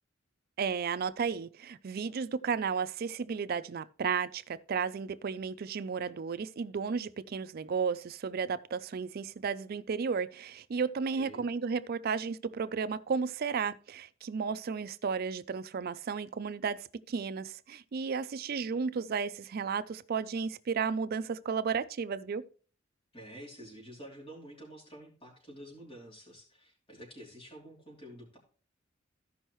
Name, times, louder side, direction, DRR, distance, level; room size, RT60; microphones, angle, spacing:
voice 1, 0.6-22.5, right 5 dB, 50° right, 0.4 m, -33 dB
voice 2, 11.1-11.5 23.1-28.4, equal, 30° left, 3.1 m, -49 dB
15.0 x 5.4 x 3.0 m
head